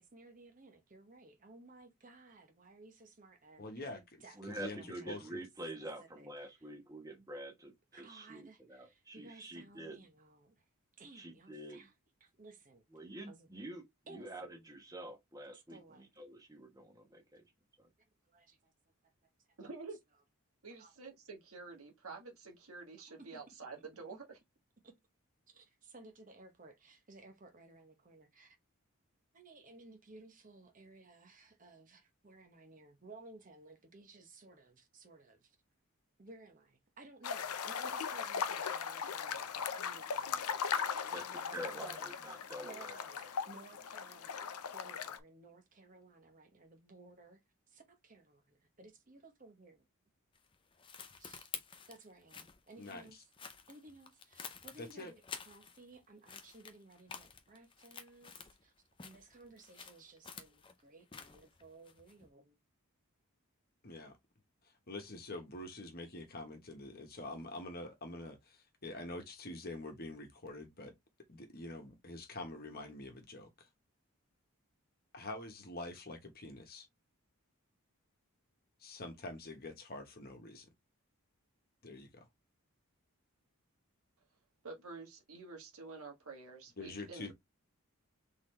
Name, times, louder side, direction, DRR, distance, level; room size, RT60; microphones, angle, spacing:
voice 1, 0.0-5.4 6.0-6.7 7.9-10.6 11.0-11.9 12.2-13.5 14.1-14.5 15.5-16.1 18.3-18.7 19.0-19.1 20.7-20.9 23.2-23.4 24.8-24.9 25.5-28.6 29.3-35.6 36.2-40.7 41.1-47.4 47.7-49.9 51.2-51.5 51.9-53.3 53.7-58.7 59.0-62.6, right 2 dB, 35° right, 0.9 m, -58 dB
voice 2, 3.6-4.0 4.5-5.4 52.8-53.2 54.8-55.1 63.8-64.2 64.6-70.9 71.3-73.7 75.1-76.9 78.8-80.7 81.8-82.3 86.8-87.3, left 2 dB, 45° left, 1.2 m, -46 dB
voice 3, 4.4-10.0 11.1-11.8 12.9-13.8 14.1-15.8 16.2-17.4 17.8-17.9 41.1-41.2 41.5-43.0, right 1 dB, 15° right, 1.2 m, -47 dB
voice 4, 19.6-20.0 20.6-24.4 84.6-87.3, right 4 dB, 75° right, 1.5 m, -49 dB
sound 1, 37.2-45.2, left 6 dB, 85° left, 0.6 m, -39 dB
sound 2, 50.3-56.0 56.3-58.6 58.9-62.3, left 6 dB, 25° left, 0.6 m, -50 dB
4.0 x 3.6 x 3.2 m
head